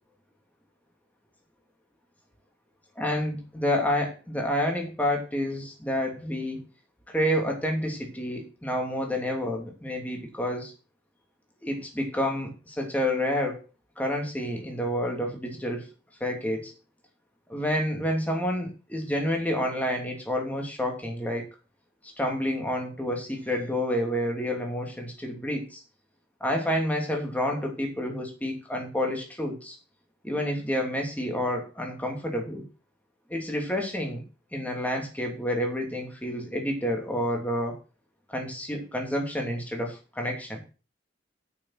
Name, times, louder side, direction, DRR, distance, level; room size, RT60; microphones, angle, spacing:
voice 1, 3.0-6.6 7.1-10.7 11.6-13.6 14.0-15.9 16.2-16.7 17.5-21.5 22.2-25.8 26.4-29.8 30.2-32.6 33.3-34.2 34.5-37.8 38.3-40.6, left 1 dB, 10° left, 1 dB, 2.7 m, -29 dB
8.7 x 6.8 x 6.4 m, 0.33 s
head